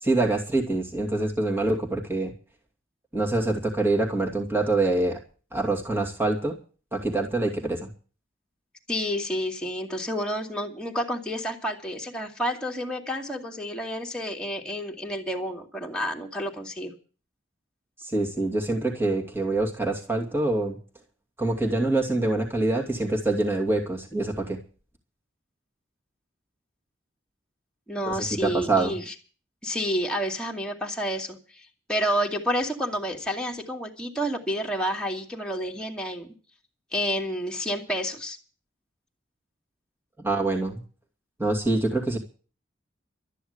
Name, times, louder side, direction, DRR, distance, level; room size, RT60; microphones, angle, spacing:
voice 1, 0.0-2.3 3.1-5.2 5.5-6.6 6.9-7.9 18.0-20.8 21.4-24.6 28.1-28.9 40.2-40.8 41.4-42.2, right 2 dB, 10° right, 0 dB, 2.5 m, -25 dB
voice 2, 8.9-16.9 27.9-29.1 29.6-31.4 31.9-36.3 36.9-38.4, equal, 5° left, 0 dB, 2.4 m, -29 dB
13.0 x 10.0 x 8.1 m, 0.39 s
head